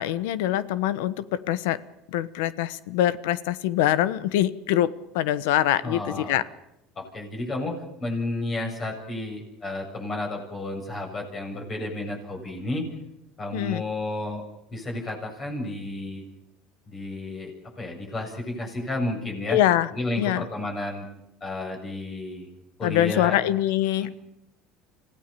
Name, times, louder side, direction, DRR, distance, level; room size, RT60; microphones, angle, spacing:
voice 1, 0.0-1.8 2.1-4.9 5.1-6.4 13.5-13.8 19.5-19.9 20.2-20.4 22.8-24.1, left 12 dB, 85° left, 17 dB, 1.2 m, -24 dB
voice 2, 5.8-6.4 7.0-12.9 13.4-14.4 14.7-16.2 16.9-17.5 17.8-19.6 19.9-21.1 21.4-22.5 22.8-23.4 24.0-24.1, left 2 dB, 30° left, 1 dB, 7.7 m, -32 dB
26.5 x 16.5 x 6.9 m, 0.84 s
supercardioid pair, 105°, 0 cm